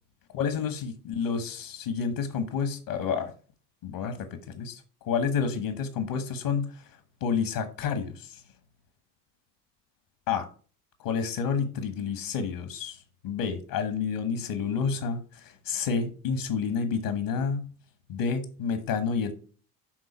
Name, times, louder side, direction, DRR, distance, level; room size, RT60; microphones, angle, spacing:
voice 1, 0.3-3.3 3.8-6.8 7.2-8.4 10.3-10.5 11.0-17.7 18.1-19.4, left 6 dB, 60° left, 9 dB, 1.4 m, -29 dB
11.0 x 3.9 x 4.4 m, 0.40 s
hypercardioid pair, 55°, 48 cm